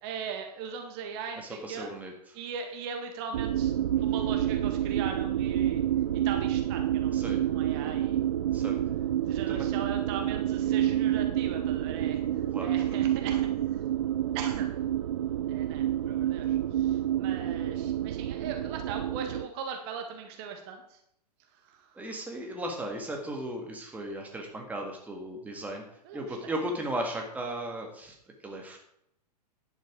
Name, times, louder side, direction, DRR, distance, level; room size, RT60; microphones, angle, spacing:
voice 1, 0.0-1.9 2.3-3.7 4.0-5.8 6.1-8.2 9.2-13.9 14.3-14.7 15.5-21.0 21.5-22.1 26.0-26.6, right 6 dB, 40° right, 4 dB, 1.7 m, -39 dB
voice 2, 1.4-2.1 7.1-7.4 8.5-8.8 9.5-9.7 12.5-13.0 22.0-25.8 26.1-28.1 28.4-28.8, right 1 dB, 5° right, 1 dB, 1.8 m, -36 dB
sound 1, 3.3-19.5, right 11 dB, 55° right, 0.4 m, -28 dB
10.5 x 7.6 x 5.1 m, 0.74 s
figure-of-eight pair, 105°, 21 cm